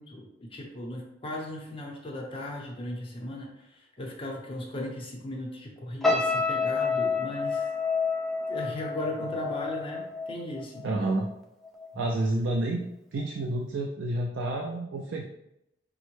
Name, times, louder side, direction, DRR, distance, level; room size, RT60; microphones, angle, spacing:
voice 1, 0.0-7.7 8.5-10.9, left 1 dB, 30° left, -1 dB, 0.7 m, -37 dB
sound 1, 6.0-11.3 11.6-12.0, left 4 dB, ahead, 0.3 m, -29 dB
voice 2, 10.8-11.3 11.9-12.8 13.1-15.2, right 2 dB, 75° right, 0 dB, 0.4 m, -29 dB
5.1 x 2.1 x 3.1 m, 0.84 s
head